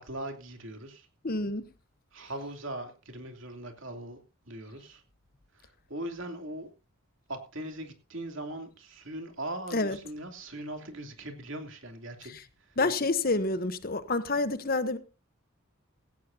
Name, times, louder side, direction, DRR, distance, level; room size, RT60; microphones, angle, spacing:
voice 1, 0.0-1.1 2.1-4.2 4.5-5.0 5.5-6.7 7.3-12.3, right 1 dB, 60° right, 2.9 m, -40 dB
voice 2, 1.2-1.6 9.7-10.0 12.3-12.4 12.8-15.0, left 3 dB, 40° left, 1.0 m, -28 dB
16.5 x 16.0 x 2.7 m
head